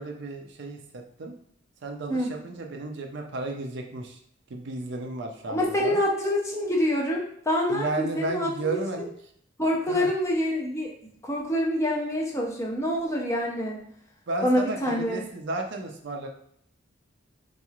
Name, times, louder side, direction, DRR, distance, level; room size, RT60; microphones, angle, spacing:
voice 1, 0.0-1.3 1.8-4.2 4.5-6.0 7.7-9.1 9.9-10.1 14.3-16.3, right 2 dB, 60° right, 3 dB, 0.5 m, -33 dB
voice 2, 5.5-9.1 9.6-10.9 11.2-13.8 14.4-15.3, equal, 15° left, -2 dB, 0.6 m, -26 dB
3.9 x 2.9 x 2.4 m, 0.67 s
head